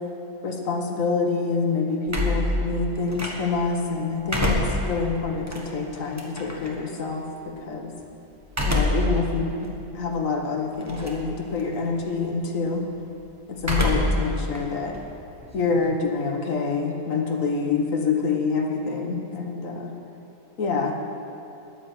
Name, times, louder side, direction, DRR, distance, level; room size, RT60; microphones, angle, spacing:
voice 1, 0.4-7.9 8.6-9.7 9.9-12.8 13.5-15.0 15.5-19.9 20.6-20.9, left 4 dB, 50° left, 2 dB, 1.4 m, -26 dB
sound 1, 2.1-3.7 4.1-6.7 8.5-9.2 9.7-9.8 10.8-11.3 11.6-12.0 13.6-14.3 14.5-16.0, left 1 dB, 10° right, 1.1 m, -26 dB
10.5 x 9.7 x 7.6 m, 2.7 s
omnidirectional pair, 2.0 m